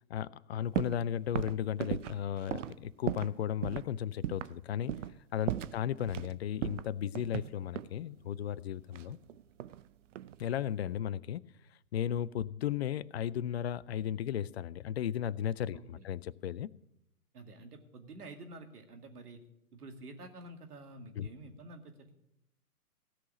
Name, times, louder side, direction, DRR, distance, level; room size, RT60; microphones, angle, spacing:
voice 1, 0.1-4.9 5.3-9.2 10.4-11.4 11.9-16.7 21.2-21.3, left 10 dB, 45° left, 0.4 m, -35 dB
sound 1, 0.7-1.0 1.3-3.4 3.6-3.9 4.2-4.6 4.9-5.2 5.5-6.3 6.6-8.0 8.9-9.8 10.1-10.6, right 11 dB, 55° right, 0.6 m, -37 dB
voice 2, 15.7-16.1 17.3-19.4 19.7-22.1, right 2 dB, 75° right, 2.4 m, -49 dB
16.0 x 5.7 x 9.9 m
hypercardioid pair, 130°, 46 cm